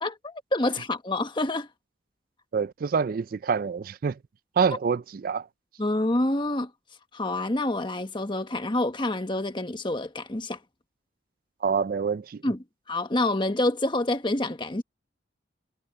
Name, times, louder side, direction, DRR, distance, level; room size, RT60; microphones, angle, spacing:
voice 1, 0.0-1.7 5.8-6.7 7.1-10.6 12.4-12.6 12.9-14.8, left 2 dB, 25° left, 1.3 m, -27 dB
voice 2, 2.5-4.2 4.6-5.5 11.6-12.4, right 6 dB, 50° right, 0.4 m, -26 dB
head